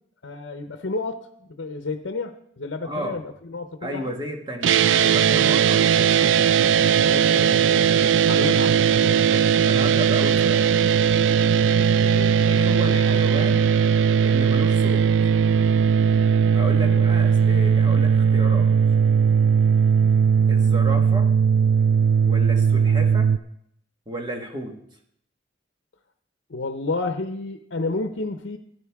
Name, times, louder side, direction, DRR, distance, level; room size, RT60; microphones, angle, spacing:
voice 1, 0.2-4.1 7.1-7.9 8.3-9.4 12.0-12.4 16.8-17.1 26.5-28.6, left 3 dB, 75° left, 6 dB, 0.7 m, -31 dB
voice 2, 2.8-3.2 3.8-5.9 9.3-10.7 12.4-13.7 14.2-15.1 16.5-18.7 20.5-21.3 22.3-23.3 24.1-24.8, right 1 dB, 25° right, 2 dB, 1.5 m, -32 dB
sound 1, 4.6-23.4, right 7 dB, 80° right, 0.4 m, -18 dB
16.0 x 9.6 x 3.5 m, 0.71 s
head